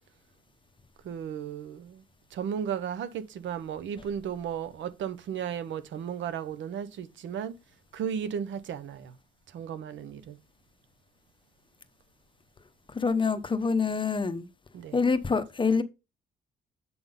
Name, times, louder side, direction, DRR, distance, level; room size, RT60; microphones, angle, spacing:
voice 1, 1.0-2.0 2.3-7.5 7.9-9.1 9.5-10.4 14.7-15.0, right 8 dB, 75° right, 0.8 m, -35 dB
voice 2, 12.9-14.5 14.9-15.8, left 5 dB, 25° left, 0.8 m, -26 dB
7.7 x 3.8 x 5.3 m
cardioid pair, 90°, 20 cm